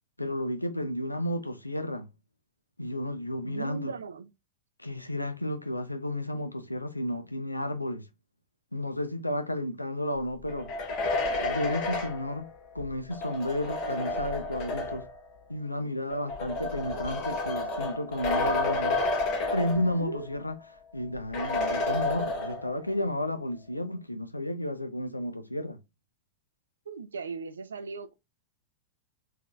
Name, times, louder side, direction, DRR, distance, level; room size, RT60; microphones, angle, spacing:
voice 1, 0.2-2.1 2.8-3.9 4.8-8.1 8.7-10.7 11.4-12.5 12.7-15.1 15.5-19.0 19.5-20.5 20.9-25.8, left 1 dB, 85° left, 0.4 m, -32 dB
voice 2, 3.4-4.3 19.9-20.3 26.9-28.1, right 4 dB, 70° right, 0.4 m, -37 dB
sound 1, 10.5-15.2 16.1-20.3 20.6-20.7 21.3-22.9, left 2 dB, 40° left, 1.1 m, -31 dB
3.5 x 2.7 x 2.3 m
figure-of-eight pair, 90°, 0 cm